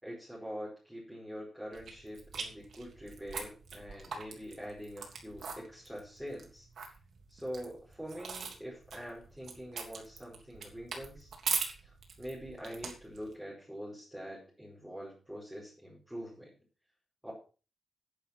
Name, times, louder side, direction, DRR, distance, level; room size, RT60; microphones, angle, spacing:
voice 1, 0.0-6.7 7.3-11.3 11.8-16.5 17.2-17.3, equal, 5° right, -6 dB, 5.0 m, -44 dB
sound 1, 1.7-13.3, right 5 dB, 65° right, 3.1 m, -42 dB
9.9 x 9.8 x 5.9 m, 0.35 s
wide cardioid pair, 150°, 0 cm